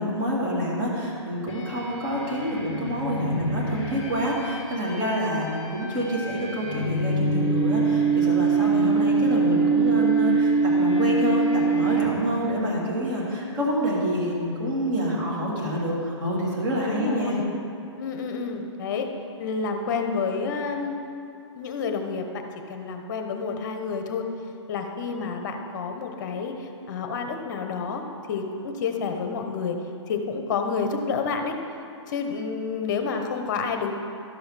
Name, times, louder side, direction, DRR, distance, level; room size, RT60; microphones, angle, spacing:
voice 1, 0.0-17.4, equal, 25° right, -5 dB, 2.4 m, -27 dB
sound 1, 1.5-12.5, right 4 dB, 10° left, 1.7 m, -24 dB
voice 2, 16.8-17.5 18.0-19.1 19.4-21.0 21.5-24.3 24.7-29.8 30.1-31.5 32.1-33.9, left 5 dB, 40° left, 5 dB, 1.0 m, -29 dB
12.5 x 5.7 x 5.8 m, 2.7 s
hypercardioid pair, 165°, 16 cm